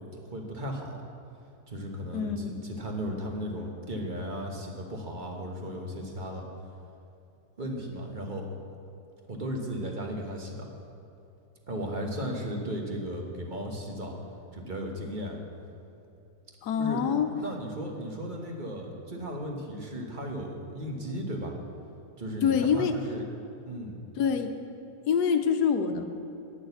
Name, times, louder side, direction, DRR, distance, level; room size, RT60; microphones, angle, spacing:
voice 1, 0.1-1.0 1.7-6.4 7.6-8.4 9.3-10.7 11.7-14.2 14.5-15.4 16.8-21.7 22.2-23.2 23.7-23.9, equal, 35° right, 1 dB, 1.2 m, -35 dB
voice 2, 2.1-2.6 16.6-17.3 22.4-23.0 24.2-24.6 25.1-26.1, left 7 dB, 80° left, 7 dB, 1.2 m, -25 dB
9.8 x 6.3 x 7.9 m, 2.7 s
omnidirectional pair, 1.7 m